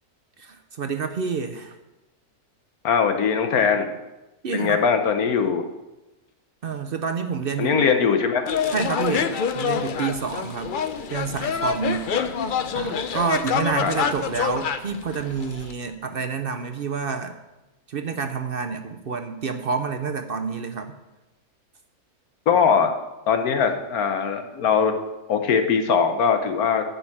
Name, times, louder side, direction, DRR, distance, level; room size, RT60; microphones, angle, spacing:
voice 1, 0.4-1.8 4.4-4.8 6.6-7.8 8.7-10.8 11.1-12.3 12.7-17.4 17.9-21.0, right 5 dB, 55° right, 7 dB, 0.7 m, -28 dB
voice 2, 2.8-3.9 4.5-5.6 7.6-8.5 9.1-9.3 12.1-12.3 13.8-13.9 22.5-22.9 23.3-24.9 25.3-26.8, left 6 dB, 75° left, 7 dB, 1.3 m, -21 dB
sound 1, 8.5-15.7, left 7 dB, 60° left, 0.5 m, -26 dB
10.5 x 5.5 x 8.4 m, 1.0 s
omnidirectional pair, 1.6 m